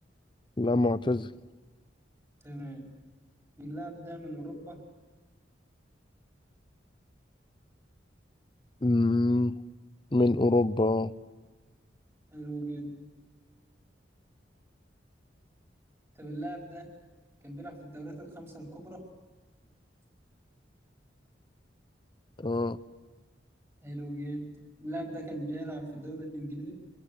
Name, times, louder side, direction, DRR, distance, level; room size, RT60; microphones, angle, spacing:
voice 1, 0.6-1.3 8.8-9.6 10.1-11.1 22.4-22.8, left 2 dB, 25° left, 15 dB, 0.7 m, -25 dB
voice 2, 2.4-2.9 3.6-4.8 12.3-13.0 16.1-16.9 17.4-19.1 23.8-26.7, right 1 dB, 15° right, 2 dB, 5.0 m, -39 dB
26.0 x 20.5 x 8.3 m, 1.3 s
head